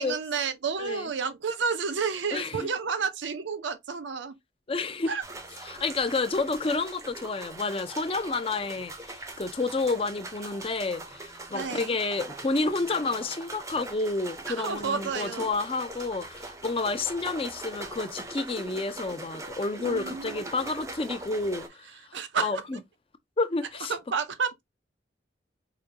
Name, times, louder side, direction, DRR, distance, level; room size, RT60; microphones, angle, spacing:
voice 1, 0.0-4.3 5.1-5.2 11.5-12.0 14.5-15.5 19.8-20.4 22.1-22.6 23.9-24.6, right 5 dB, 80° right, 0.6 m, -31 dB
voice 2, 0.8-1.1 2.3-2.7 4.7-5.1 5.6-22.8 23.4-23.9, left 3 dB, 30° left, 0.5 m, -30 dB
sound 1, 5.2-21.7, right 2 dB, 15° right, 0.6 m, -41 dB
4.9 x 2.2 x 2.7 m
head